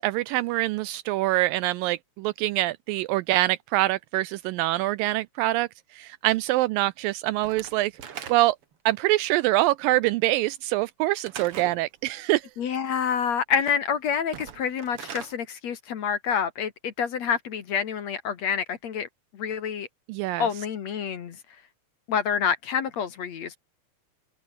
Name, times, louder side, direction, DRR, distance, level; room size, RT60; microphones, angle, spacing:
voice 1, 0.0-7.9 8.3-8.6 8.9-12.5 20.1-20.5, right 17 dB, 80° right, 2.1 m, -25 dB
Slam / Wood, 7.4-8.7 11.2-11.8 14.2-15.4, right 8 dB, 45° right, 2.3 m, -40 dB
voice 2, 12.6-19.1 19.3-19.9 20.4-21.4 22.1-23.6, left 7 dB, 55° left, 2.4 m, -27 dB
omnidirectional pair, 4.3 m